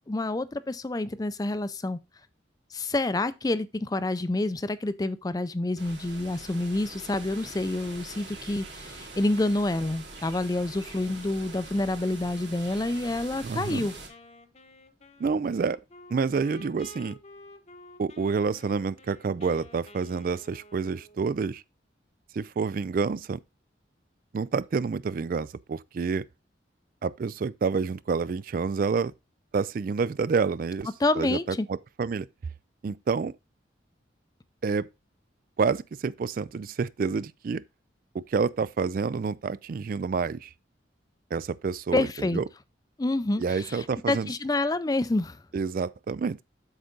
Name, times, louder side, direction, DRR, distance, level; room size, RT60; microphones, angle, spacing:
voice 1, 0.1-2.0 2.7-13.9 31.0-31.7 41.9-42.4 43.0-45.4, left 2 dB, 20° left, 0.4 m, -28 dB
sound 1, 5.8-14.1, right 3 dB, 70° right, 2.8 m, -44 dB
voice 2, 13.4-13.9 15.2-15.8 16.1-17.2 18.0-21.6 22.3-23.4 24.3-26.3 27.0-29.1 29.5-30.9 31.2-32.3 32.8-33.3 34.6-34.9 35.6-37.6 38.1-40.5 41.3-42.1 42.3-42.4 43.4-44.3 45.5-46.4, right 5 dB, 50° right, 0.3 m, -28 dB
Wind instrument woodwind instrument, 13.7-21.6, left 1 dB, 35° left, 0.9 m, -51 dB
8.1 x 6.4 x 3.9 m
head